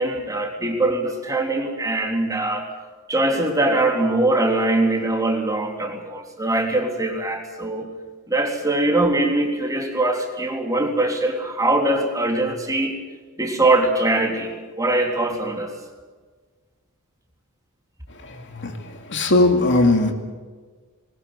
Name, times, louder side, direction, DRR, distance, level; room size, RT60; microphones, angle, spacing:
voice 1, 0.0-2.7 3.1-7.9 8.3-13.0 13.4-15.7, right 2 dB, 15° right, 1 dB, 3.5 m, -22 dB
voice 2, 19.1-20.1, left 2 dB, 55° left, 5 dB, 2.4 m, -17 dB
21.0 x 20.0 x 8.2 m, 1.4 s
head